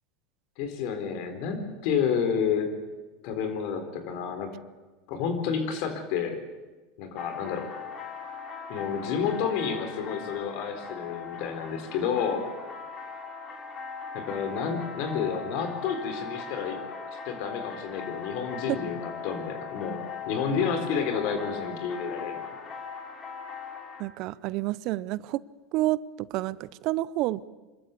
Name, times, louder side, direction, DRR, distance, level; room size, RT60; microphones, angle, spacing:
voice 1, 0.6-2.7 3.2-4.5 5.1-6.4 7.0-7.7 8.7-12.4 14.1-16.8 17.1-20.0 20.3-22.4, left 6 dB, 65° left, 7 dB, 4.0 m, -30 dB
sound 1, 7.2-24.0, left 6 dB, 40° left, 3.4 m, -39 dB
voice 2, 24.0-25.4 25.7-27.5, right 17 dB, 55° right, 20 dB, 0.6 m, -29 dB
25.0 x 13.5 x 8.3 m, 1.2 s
hypercardioid pair, 105°, 0 cm